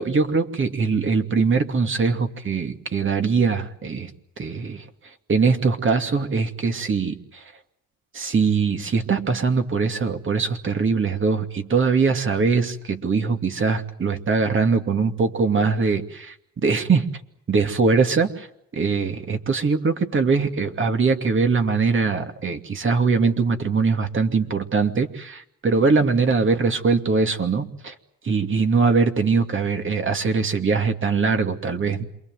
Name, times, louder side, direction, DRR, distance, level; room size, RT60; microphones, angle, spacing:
voice 1, 0.0-4.1 4.4-4.8 5.3-7.4 8.1-17.1 17.5-18.5 18.7-27.9 28.2-32.0, right 4 dB, 40° right, 5 dB, 2.6 m, -22 dB
28.0 x 22.5 x 7.9 m, 0.76 s
cardioid pair, 90°, 30 cm